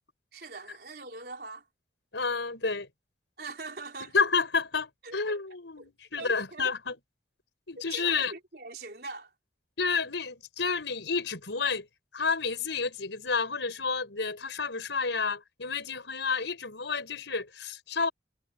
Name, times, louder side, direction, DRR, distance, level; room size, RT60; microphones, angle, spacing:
voice 1, 0.3-1.6 3.4-4.3 5.0-5.4 5.8-5.9 6.2-6.7 7.8-9.3, right 3 dB, 60° right, 4.2 m, -42 dB
voice 2, 2.1-2.9 4.0-7.0 7.7-8.3 9.8-11.9 12.1-18.1, left 5 dB, 90° left, 5.8 m, -30 dB
head